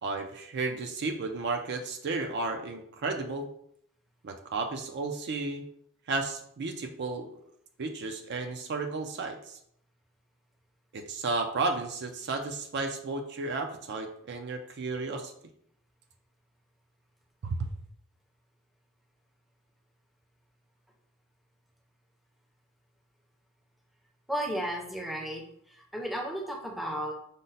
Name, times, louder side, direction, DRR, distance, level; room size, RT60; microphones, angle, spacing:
voice 1, 0.0-3.5 4.2-5.6 6.1-7.3 7.8-9.6 10.9-15.3 17.4-17.7, right 3 dB, 50° right, 5 dB, 0.4 m, -33 dB
voice 2, 24.3-27.1, equal, ahead, 0 dB, 0.6 m, -34 dB
5.2 x 2.1 x 4.0 m, 0.69 s
head